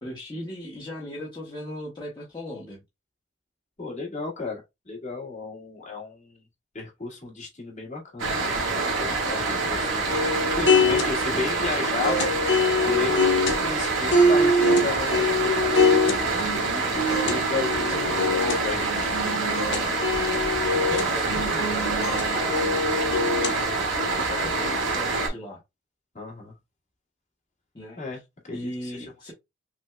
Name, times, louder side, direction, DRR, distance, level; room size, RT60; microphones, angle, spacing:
voice 1, 0.0-2.8 17.9-18.2 20.9-22.6 22.9-23.2 23.6-25.6 27.7-28.2 28.5-29.3, left 1 dB, 20° left, 1.0 m, -38 dB
voice 2, 3.8-6.4 6.7-12.3 12.8-16.2 16.5-19.6 20.7-21.0 26.1-26.5 28.0-28.2 28.5-29.0, left 4 dB, 35° left, 1.7 m, -34 dB
sound 1, 8.2-25.3, right 3 dB, 90° right, 1.6 m, -26 dB
sound 2, 10.1-23.6, left 2 dB, 65° left, 1.0 m, -25 dB
5.9 x 2.3 x 2.2 m
head